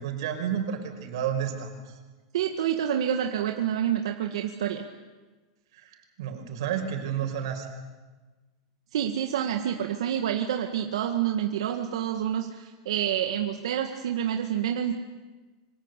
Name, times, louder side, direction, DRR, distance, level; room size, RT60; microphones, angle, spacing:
voice 1, 0.0-1.9 5.7-7.7, right 8 dB, 60° right, 5 dB, 5.4 m, -31 dB
voice 2, 2.3-4.9 8.9-14.9, right 10 dB, 85° right, 4 dB, 1.9 m, -28 dB
28.5 x 25.5 x 8.3 m, 1.2 s
supercardioid pair, 180°, 3 cm